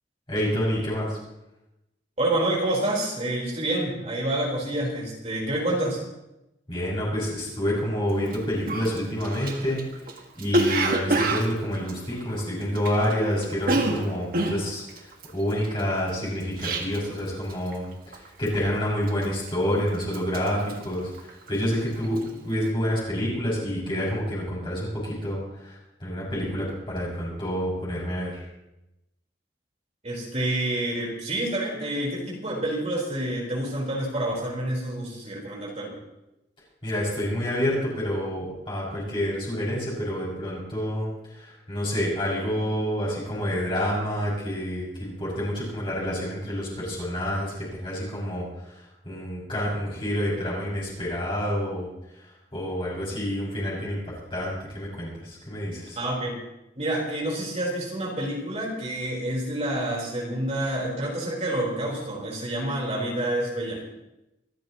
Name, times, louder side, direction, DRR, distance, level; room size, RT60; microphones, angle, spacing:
voice 1, 0.3-1.2 6.7-9.8 10.3-28.4 36.8-48.5 49.0-51.9 52.5-56.0, equal, 30° left, -7 dB, 6.3 m, -28 dB
voice 2, 2.2-6.0 30.0-36.0 56.0-56.4 56.8-63.9, right 1 dB, 40° right, -2 dB, 4.0 m, -28 dB
Cough, 8.3-8.4 8.7-13.1 13.4-17.2 17.5-17.8 18.1-18.6 19.1-19.7 20.0-21.6 22.0-22.3, right 2 dB, 55° right, 1.7 m, -27 dB
25.5 x 14.0 x 3.0 m, 0.90 s
head